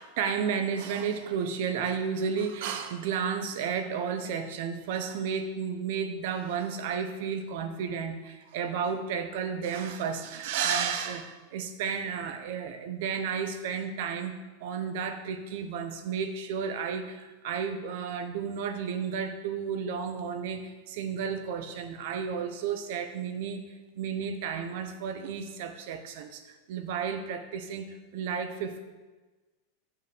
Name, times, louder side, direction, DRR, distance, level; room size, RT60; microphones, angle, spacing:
voice 1, 0.0-28.9, right 6 dB, 60° right, 8 dB, 1.0 m, -32 dB
7.2 x 5.9 x 6.2 m, 1.2 s
supercardioid pair, 150°, 0 cm